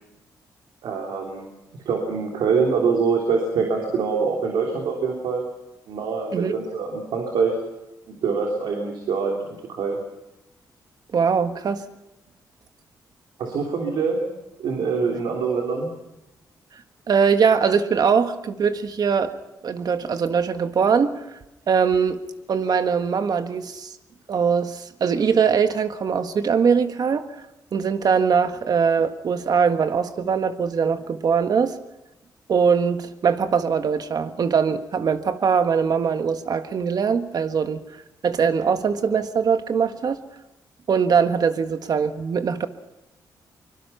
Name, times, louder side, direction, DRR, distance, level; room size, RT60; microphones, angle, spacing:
voice 1, 0.8-1.5 1.8-5.4 5.9-7.5 8.1-10.0 13.4-14.2 14.6-15.9, right 5 dB, 85° right, 1 dB, 3.4 m, -24 dB
voice 2, 11.1-11.8 17.1-19.3 19.6-21.1 21.7-22.2 22.5-23.9 24.3-27.2 27.7-31.7 32.5-37.8 38.2-40.2 40.9-42.7, right 6 dB, 60° right, 9 dB, 1.6 m, -21 dB
24.0 x 22.5 x 5.8 m, 0.94 s
cardioid pair, 80°, 8 cm